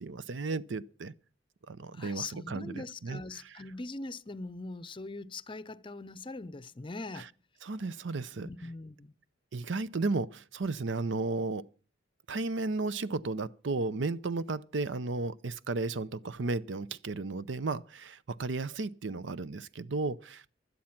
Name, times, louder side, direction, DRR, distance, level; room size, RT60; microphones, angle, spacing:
voice 1, 0.0-1.1 1.7-3.2 7.6-8.5 9.5-11.7 12.3-20.5, right 3 dB, 75° right, 0.6 m, -34 dB
voice 2, 1.9-7.3 8.4-9.1, left 3 dB, 25° left, 0.6 m, -41 dB
16.5 x 12.0 x 5.9 m
head